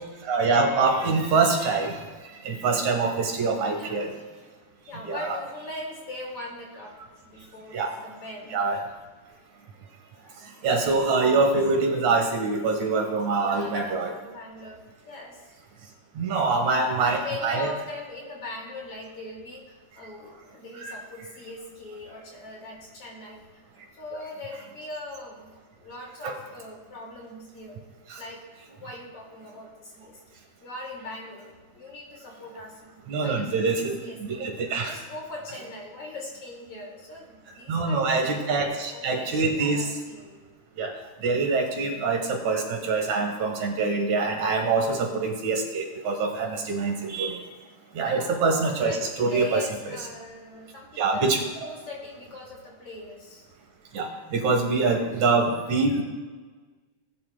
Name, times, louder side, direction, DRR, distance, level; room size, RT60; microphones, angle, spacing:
voice 1, 0.2-2.0 2.4-4.1 5.1-5.4 7.7-7.9 8.5-8.8 10.6-14.1 16.2-17.7 20.8-20.9 26.2-26.4 28.1-28.2 33.1-35.0 37.7-40.0 40.8-40.9 41.2-47.4 47.9-49.6 51.0-51.4 53.9-56.0, right 3 dB, 70° right, 1 dB, 2.7 m, -25 dB
voice 2, 3.8-4.2 4.9-7.0 7.2-8.6 13.4-15.4 16.3-16.7 17.0-23.6 23.9-27.8 28.2-28.4 28.8-34.4 34.8-40.4 48.0-48.4 48.8-53.5, left 2 dB, 50° left, -3 dB, 3.1 m, -40 dB
18.0 x 10.0 x 2.2 m, 1.4 s
omnidirectional pair, 3.6 m